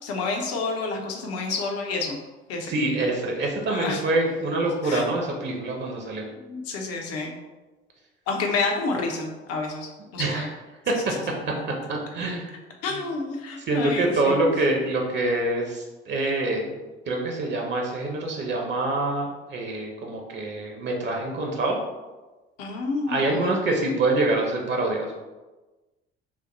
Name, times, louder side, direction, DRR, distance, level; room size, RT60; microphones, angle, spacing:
voice 1, 0.0-2.2 2.5-2.7 3.7-4.0 4.8-5.0 6.5-7.4 8.3-10.5 12.8-14.4 22.6-23.8, left 3 dB, 50° left, 2 dB, 0.8 m, -29 dB
voice 2, 2.6-6.2 10.2-10.4 10.9-11.0 11.9-12.5 13.7-16.8 17.1-21.8 23.1-25.2, right 2 dB, 35° right, 1 dB, 0.8 m, -25 dB
5.5 x 2.1 x 3.0 m, 1.2 s
figure-of-eight pair, 55°, 31 cm